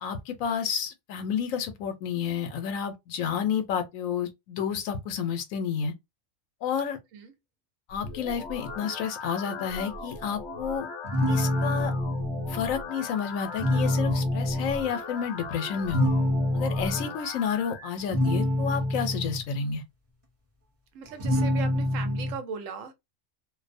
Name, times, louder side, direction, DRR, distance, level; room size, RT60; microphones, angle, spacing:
voice 1, 0.0-5.9 6.6-7.0 7.9-10.9 11.3-11.9 12.5-16.1 16.5-19.8, left 7 dB, 85° left, 1.0 m, -30 dB
sound 1, 7.9-17.9, left 3 dB, 65° left, 0.9 m, -39 dB
sound 2, 11.0-12.7 13.4-14.8 15.9-17.1 18.0-19.4 21.2-22.4, left 1 dB, 35° right, 0.7 m, -26 dB
voice 2, 20.9-22.9, right 6 dB, 75° right, 1.1 m, -38 dB
2.5 x 2.0 x 2.5 m
omnidirectional pair, 1.4 m